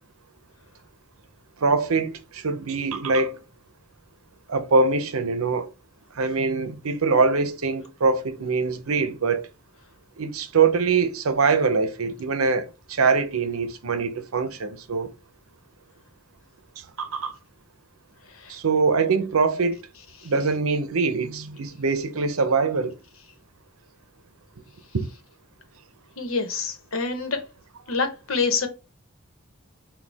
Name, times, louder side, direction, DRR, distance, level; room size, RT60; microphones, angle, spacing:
voice 1, 1.6-3.4 4.5-5.7 6.1-9.5 10.2-15.1 17.0-17.3 18.5-19.8 20.2-23.0 24.9-25.1, right 4 dB, 85° right, 0.7 m, -23 dB
voice 2, 26.2-27.4 27.9-28.7, left 4 dB, 75° left, 1.0 m, -27 dB
6.1 x 2.3 x 3.4 m
head